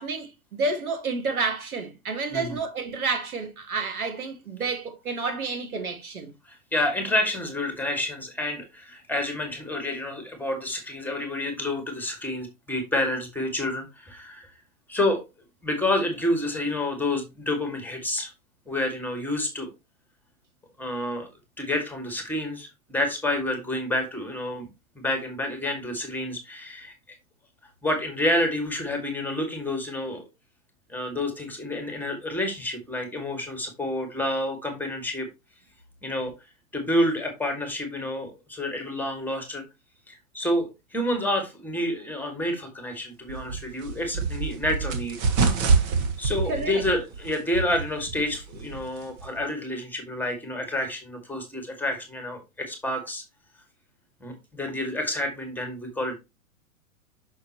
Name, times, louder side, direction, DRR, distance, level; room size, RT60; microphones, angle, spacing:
voice 1, 0.0-6.3 46.5-46.8, right 3 dB, 90° right, 2.2 m, -30 dB
voice 2, 6.5-14.5 14.9-15.2 15.6-18.3 18.7-19.7 20.8-21.3 21.6-24.7 25.0-26.9 27.8-30.2 30.9-35.3 36.0-36.3 36.7-39.6 40.1-45.2 46.2-53.2 54.2-56.2, left 1 dB, 5° left, 2.1 m, -29 dB
sound 1, 43.3-49.4, right 4 dB, 45° right, 1.8 m, -27 dB
6.5 x 6.3 x 3.0 m
hypercardioid pair, 120°, 42 cm